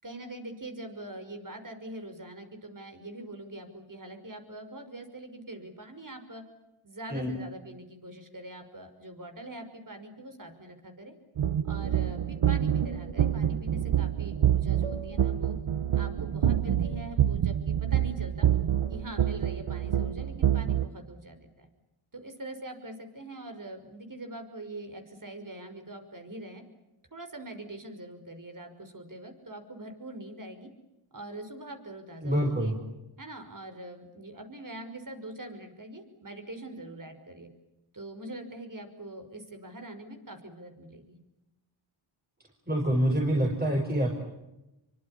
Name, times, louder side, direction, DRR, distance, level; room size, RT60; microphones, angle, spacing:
voice 1, 0.0-6.4 6.8-11.1 11.6-15.6 15.9-18.5 18.9-21.7 22.1-26.6 27.1-30.7 31.1-32.8 33.2-37.5 37.9-41.2, right 1 dB, 40° right, 6 dB, 5.7 m, -43 dB
sound 1, 11.4-20.9, right 10 dB, 90° right, 1.2 m, -27 dB
voice 2, 32.2-32.8 42.7-44.2, right 1 dB, 20° right, 0 dB, 5.8 m, -26 dB
26.0 x 24.5 x 8.7 m, 0.95 s
cardioid pair, 55°, 50 cm